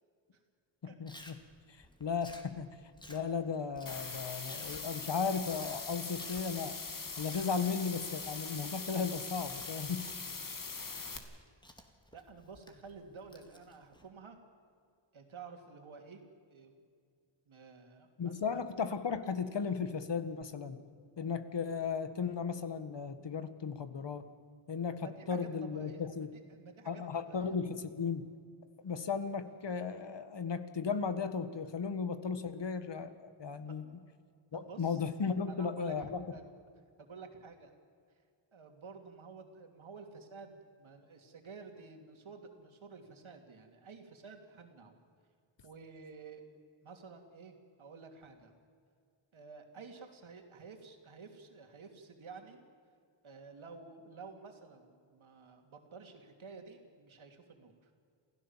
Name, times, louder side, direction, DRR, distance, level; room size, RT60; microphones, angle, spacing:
voice 1, 1.0-1.3 1.7-2.7 3.1-6.8 7.2-10.0 18.2-20.8 21.2-24.3 24.7-26.3 26.9-28.3 28.8-33.1 33.4-33.8 34.5-36.2, left 5 dB, 55° left, 11 dB, 1.6 m, -35 dB
Chewing mastication, 1.1-14.1, left 1 dB, 10° left, 2.1 m, -57 dB
sound 1, 3.9-11.2, left 4 dB, 40° left, 2.3 m, -42 dB
voice 2, 12.1-14.4 15.1-16.2 16.5-16.8 17.5-18.7 25.0-27.6 33.7-33.9 34.5-35.0 35.5-36.1 36.3-36.5 37.0-37.7 38.5-45.0 45.6-46.5 46.8-48.5 49.3-52.6 53.2-57.9, right 4 dB, 70° right, 4 dB, 3.1 m, -51 dB
28.0 x 16.0 x 7.4 m, 2.2 s
wide cardioid pair, 110°, 50 cm